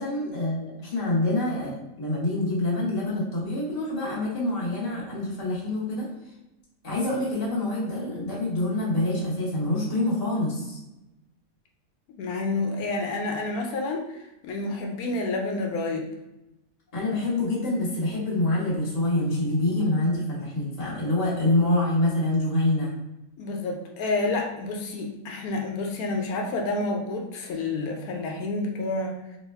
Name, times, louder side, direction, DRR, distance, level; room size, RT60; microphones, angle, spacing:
voice 1, 0.0-6.0 6.8-10.8 16.9-22.9, left 1 dB, 30° left, -6 dB, 1.0 m, -26 dB
voice 2, 12.1-14.2 14.4-16.1 23.4-29.4, left 2 dB, 85° left, 1 dB, 1.1 m, -29 dB
3.1 x 2.0 x 3.4 m, 0.94 s
omnidirectional pair, 1.5 m